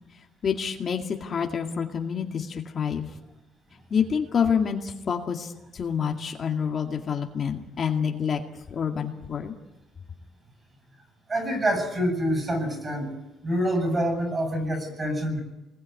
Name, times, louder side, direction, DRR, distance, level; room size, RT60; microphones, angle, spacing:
voice 1, 0.4-3.1 3.9-8.4 8.7-9.5, left 7 dB, 35° left, 2 dB, 2.1 m, -27 dB
voice 2, 11.3-13.2 13.4-15.4, equal, 20° right, 6 dB, 7.5 m, -26 dB
29.0 x 21.0 x 9.6 m, 0.98 s
cardioid pair, 170°, 0 cm